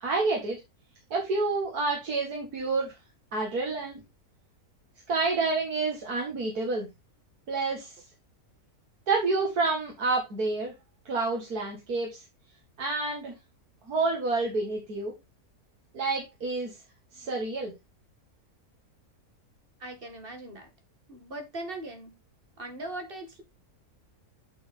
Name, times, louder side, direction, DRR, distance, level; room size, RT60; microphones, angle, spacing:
voice 1, 0.0-0.6 1.1-3.0 3.3-4.0 5.1-6.9 7.5-8.0 9.1-10.7 11.1-12.2 12.8-13.3 13.9-15.2 15.9-16.7 17.1-17.7, right 3 dB, 85° right, 2.6 m, -28 dB
voice 2, 19.8-20.7 21.1-22.1 22.6-23.4, right 2 dB, 35° right, 2.2 m, -39 dB
8.5 x 6.2 x 3.6 m
omnidirectional pair, 1.6 m